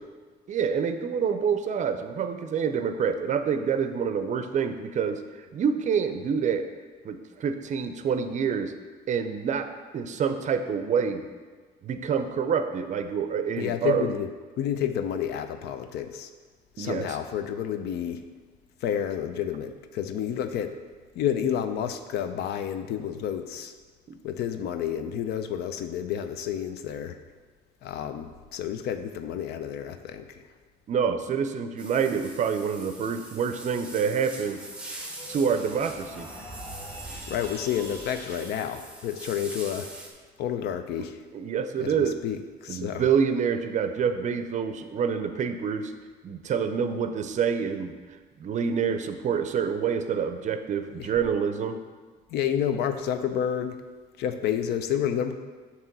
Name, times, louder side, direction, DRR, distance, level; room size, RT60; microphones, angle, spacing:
voice 1, 0.5-6.6 7.0-8.7 9.1-9.7 9.9-11.3 11.8-14.1 16.8-17.1 30.9-34.6 35.3-36.3 41.3-42.2 42.7-45.9 46.2-47.9 48.4-51.8, right 6 dB, 45° right, 9 dB, 0.5 m, -27 dB
voice 2, 13.6-14.3 14.6-16.3 16.8-18.2 18.8-20.8 21.1-23.7 24.2-27.2 27.8-30.4 37.3-39.9 40.4-41.2 41.8-43.0 51.0-51.1 52.3-53.8 54.2-55.3, left 9 dB, 75° left, 8 dB, 0.6 m, -30 dB
sound 1, 31.8-40.1, right 2 dB, 5° right, 1.0 m, -43 dB
sound 2, 34.7-38.8, right 1 dB, 15° left, 1.7 m, -43 dB
7.4 x 3.0 x 6.0 m, 1.5 s
cardioid pair, 110°, 17 cm